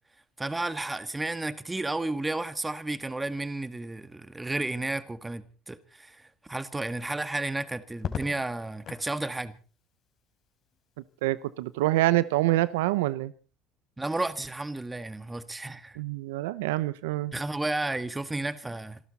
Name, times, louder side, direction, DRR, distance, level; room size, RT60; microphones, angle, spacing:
voice 1, 0.4-9.5 14.0-16.0 17.3-19.0, right 2 dB, 15° right, 1.6 m, -32 dB
Crackle, 7.9-9.1 10.7-11.2, left 8 dB, 50° left, 4.1 m, -37 dB
voice 2, 11.2-13.3 16.0-17.3, right 17 dB, 90° right, 0.7 m, -26 dB
27.0 x 12.5 x 4.2 m
supercardioid pair, 90°, 0 cm